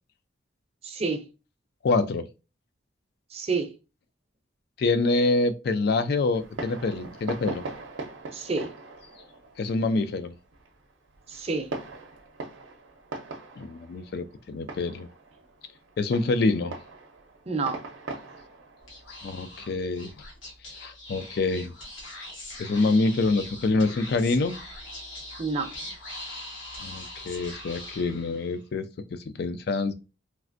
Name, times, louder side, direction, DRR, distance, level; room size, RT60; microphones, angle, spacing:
voice 1, 0.8-1.3 3.3-3.7 8.3-8.7 11.3-11.7 17.5-17.8 25.4-25.7, right 4 dB, 30° right, 0.5 m, -29 dB
voice 2, 1.8-2.2 4.8-7.6 9.6-10.3 13.6-15.1 16.0-16.7 19.2-20.1 20.7-21.7 22.6-24.6 26.8-29.9, left 3 dB, 55° left, 0.3 m, -26 dB
Fireworks, 6.3-20.5, right 3 dB, 75° right, 0.6 m, -41 dB
Speech / Whispering, 18.8-28.6, left 1 dB, 80° left, 1.1 m, -42 dB
3.2 x 2.5 x 2.5 m
head